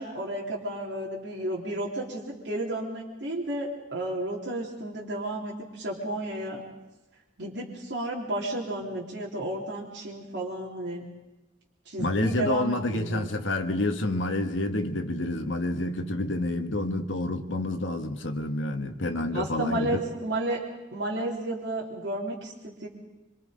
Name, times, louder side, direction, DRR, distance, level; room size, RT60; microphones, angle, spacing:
voice 1, 0.0-6.6 7.4-11.0 11.9-13.3 19.3-20.6 20.9-22.9, right 1 dB, 65° right, 3.8 m, -32 dB
voice 2, 12.0-20.0, left 1 dB, 85° left, 1.6 m, -28 dB
25.5 x 25.0 x 5.3 m
head